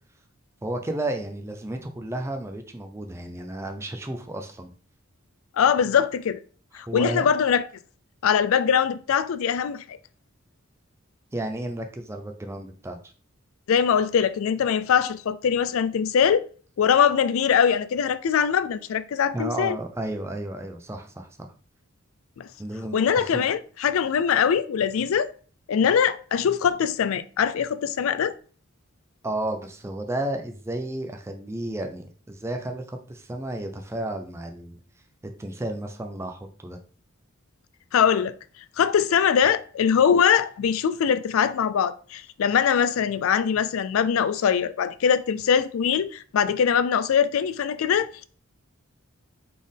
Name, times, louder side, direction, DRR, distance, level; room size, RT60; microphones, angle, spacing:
voice 1, 0.6-4.7 6.7-7.3 11.3-13.0 19.3-21.5 22.6-23.5 29.2-34.8 35.4-36.8, right 1 dB, 10° right, 0.4 m, -32 dB
voice 2, 5.6-6.4 6.7-7.6 8.2-10.0 13.7-16.5 16.8-19.8 22.4-22.5 22.9-25.3 25.7-28.3 37.9-38.3 38.8-48.3, left 7 dB, 70° left, 0.3 m, -22 dB
4.2 x 3.3 x 3.6 m
head